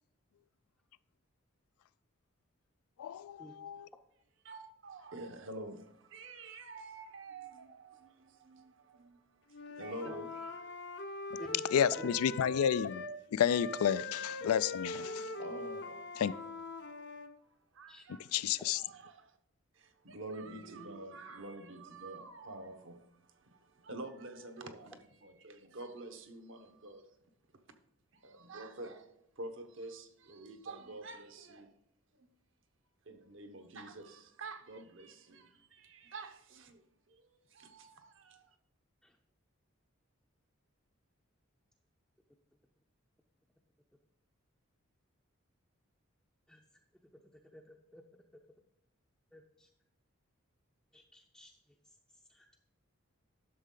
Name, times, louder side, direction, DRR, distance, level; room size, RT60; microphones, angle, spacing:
voice 1, 3.0-3.9 11.7-13.1 13.3-15.4 16.2-16.3 18.3-18.8, left 8 dB, 90° left, 0.3 m, -31 dB
voice 2, 4.4-10.8 11.3-11.4 14.9-16.1 17.4-19.4 19.7-27.1 28.1-31.7 32.2-32.3 33.0-38.6, right 2 dB, 60° right, 0.9 m, -48 dB
Wind instrument woodwind instrument, 9.5-13.2 13.4-17.3, left 2 dB, 50° left, 0.6 m, -42 dB
voice 3, 50.9-51.5 52.3-52.6, equal, ahead, 0.5 m, -51 dB
11.5 x 6.5 x 3.8 m
head